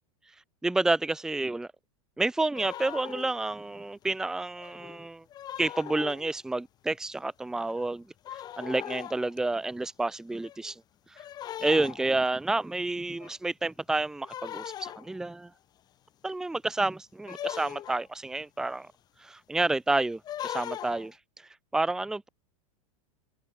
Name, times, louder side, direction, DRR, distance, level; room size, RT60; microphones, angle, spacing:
voice 1, 0.6-1.7 2.2-5.2 5.6-8.1 8.6-10.8 11.1-11.2 11.6-15.5 16.2-18.9 19.2-22.3, right 2 dB, 5° right, 1.0 m, -30 dB
sound 1, 2.5-3.4 4.0-4.1 4.6-6.3 7.2-7.3 7.6-8.0 8.2-9.4 10.3-10.7 11.2-12.3 13.2-13.3 14.2-15.3 17.3-18.1 20.1-21.1, left 11 dB, 20° left, 3.7 m, -40 dB
supercardioid pair, 170°, 18 cm